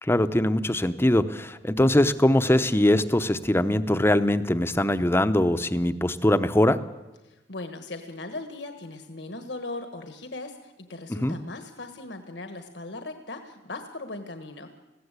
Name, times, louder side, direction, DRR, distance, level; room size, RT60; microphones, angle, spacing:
voice 1, 0.0-6.8 11.1-11.4, left 1 dB, 15° left, 11 dB, 0.7 m, -22 dB
voice 2, 7.2-14.7, left 2 dB, 70° left, 7 dB, 1.4 m, -38 dB
21.0 x 15.5 x 8.2 m, 1.1 s
head